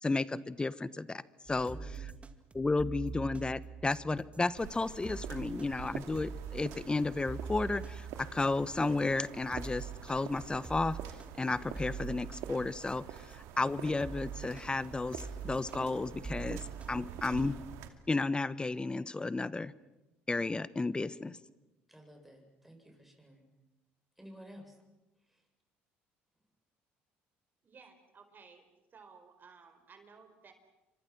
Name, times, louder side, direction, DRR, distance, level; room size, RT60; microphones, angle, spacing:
voice 1, 0.0-1.8 2.5-11.0 11.4-13.0 13.3-16.6 16.9-17.6 18.1-19.7 20.3-21.4, left 3 dB, 20° left, 16 dB, 1.2 m, -33 dB
sound 1, 1.5-13.5 14.0-17.2, right 5 dB, 25° right, 2.3 m, -45 dB
voice 2, 1.7-2.3 21.9-23.5 24.2-24.8 25.3-25.4, equal, 5° right, 2 dB, 8.0 m, -54 dB
sound 2, 4.6-17.9, right 10 dB, 75° right, 2.6 m, -47 dB
voice 3, 27.6-28.7 28.9-30.5, right 5 dB, 40° right, 7 dB, 5.3 m, -56 dB
29.5 x 25.0 x 6.2 m, 1.0 s
supercardioid pair, 75°, 5 cm